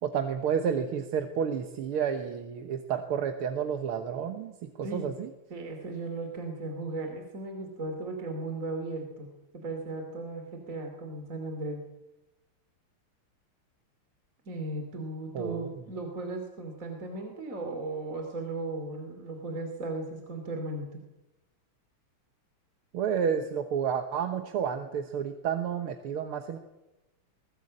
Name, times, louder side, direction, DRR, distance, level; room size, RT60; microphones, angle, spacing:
voice 1, 0.0-5.3 15.3-15.7 22.9-26.6, right 7 dB, 90° right, 6 dB, 2.1 m, -30 dB
voice 2, 4.8-5.1 5.5-9.3 9.5-11.8 14.4-21.0, right 2 dB, 40° right, 4 dB, 3.2 m, -36 dB
21.5 x 19.5 x 8.7 m, 0.98 s
omnidirectional pair, 2.3 m